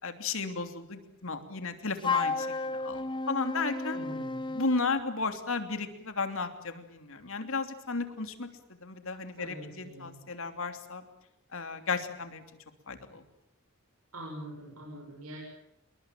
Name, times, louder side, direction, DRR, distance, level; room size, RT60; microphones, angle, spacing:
voice 1, 0.0-2.5 2.7-4.0 4.5-8.5 8.8-11.0 11.5-12.4 12.9-13.2, left 3 dB, 65° left, 8 dB, 3.0 m, -34 dB
Wind instrument woodwind instrument, 2.0-4.9, left 3 dB, 20° left, 1.3 m, -32 dB
voice 2, 3.9-4.5 9.4-10.2 14.1-15.4, right 1 dB, 80° right, -1 dB, 7.2 m, -44 dB
28.0 x 23.0 x 7.5 m, 0.84 s
head